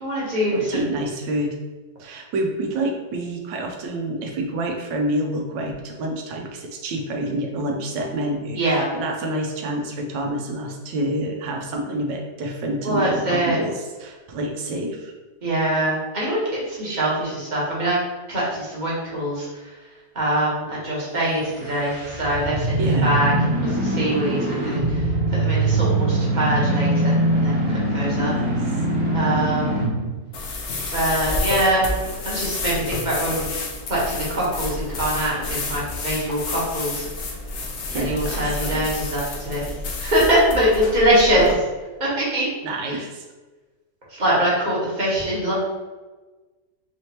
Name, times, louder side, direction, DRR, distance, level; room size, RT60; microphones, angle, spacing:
voice 1, 0.0-0.8 8.5-8.8 12.8-13.6 15.4-18.0 18.3-19.7 20.1-23.3 23.6-28.3 29.1-29.7 30.9-31.9 32.2-33.5 33.9-37.1 37.9-39.6 40.0-41.6 42.0-42.5 44.2-45.5, right 1 dB, 30° right, -6 dB, 1.1 m, -23 dB
voice 2, 0.5-1.6 2.0-15.1 22.8-23.2 28.2-28.7 37.8-38.9 42.6-43.2, right 1 dB, 80° right, 2 dB, 1.3 m, -28 dB
sound 1, 21.5-30.1, right 1 dB, 50° right, 0.3 m, -22 dB
sound 2, 30.3-41.5, left 3 dB, 65° left, 0.7 m, -29 dB
4.1 x 3.2 x 2.8 m, 1.2 s
omnidirectional pair, 1.9 m